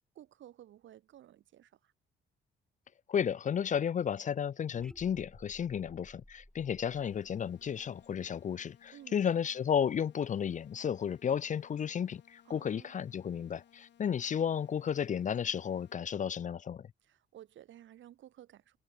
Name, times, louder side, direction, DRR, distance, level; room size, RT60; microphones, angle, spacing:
voice 1, 0.0-1.9 8.9-9.2 12.4-12.9 17.0-18.8, right 12 dB, 70° right, 2.2 m, -55 dB
voice 2, 3.1-16.9, left 8 dB, 40° left, 0.5 m, -33 dB
sound 1, 4.7-8.9, left 1 dB, 5° left, 1.6 m, -58 dB
sound 2, 6.9-15.9, left 10 dB, 65° left, 2.4 m, -64 dB
cardioid pair, 90°, 20 cm